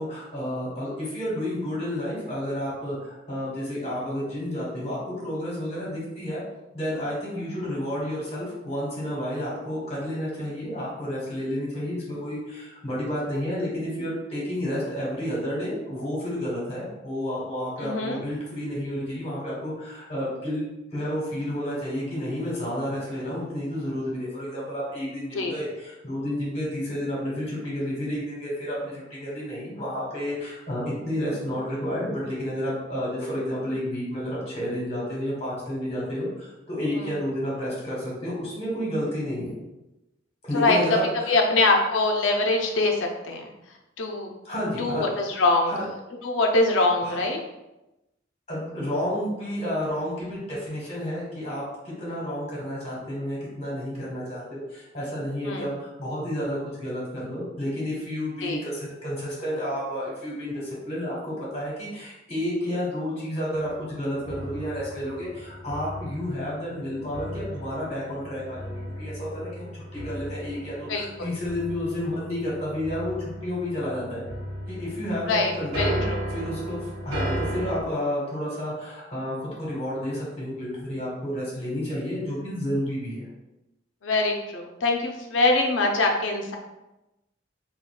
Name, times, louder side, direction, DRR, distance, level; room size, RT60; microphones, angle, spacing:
voice 1, 0.0-6.4 6.7-20.6 20.9-39.6 40.4-41.6 44.4-45.0 45.7-45.8 47.0-47.2 48.5-74.2 74.7-76.0 76.3-83.2, equal, 35° left, -5 dB, 1.1 m, -31 dB
voice 2, 17.8-18.2 25.3-25.6 36.9-37.2 40.5-41.0 41.3-43.5 44.0-44.3 44.8-45.7 46.2-47.4 55.4-55.7 58.4-58.6 70.9-71.3 75.3-76.2 84.0-86.6, left 2 dB, 85° left, 2 dB, 0.5 m, -23 dB
sound 1, 63.5-77.8, equal, 85° right, 0.7 m, -35 dB
3.6 x 2.2 x 2.3 m, 0.96 s
head